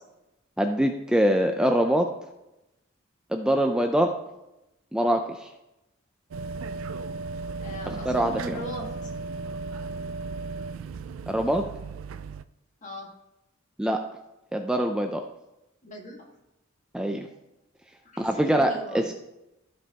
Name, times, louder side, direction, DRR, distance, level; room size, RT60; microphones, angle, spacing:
voice 1, 0.6-2.1 3.3-4.1 4.9-5.5 7.9-8.6 11.3-11.6 13.8-14.0 14.5-15.2 16.9-17.3 18.2-19.1, right 1 dB, 5° right, 4 dB, 0.4 m, -24 dB
sound 1, 6.3-12.4, right 4 dB, 75° right, 0.3 m, -35 dB
voice 2, 7.6-9.1 12.8-13.1 15.8-16.3 18.0-19.1, equal, 40° left, 0 dB, 1.7 m, -39 dB
14.5 x 5.4 x 2.9 m, 0.92 s
head